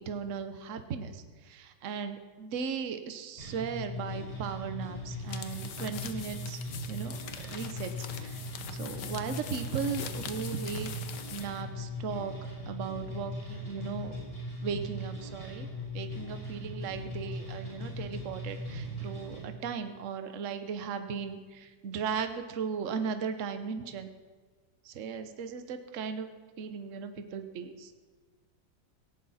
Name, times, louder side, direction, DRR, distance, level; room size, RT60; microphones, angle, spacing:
voice 1, 0.0-6.6 6.9-7.2 7.5-8.3 8.7-10.9 11.3-12.3 12.7-14.1 14.6-15.7 15.9-24.1 24.9-26.3 26.6-27.9, right 6 dB, 50° right, 8 dB, 1.1 m, -37 dB
sound 1, 3.4-19.4, left 1 dB, 25° left, 5.7 m, -39 dB
sound 2, 5.2-11.6, left 8 dB, 60° left, 1.5 m, -43 dB
17.5 x 16.0 x 4.2 m, 1.4 s
omnidirectional pair, 2.2 m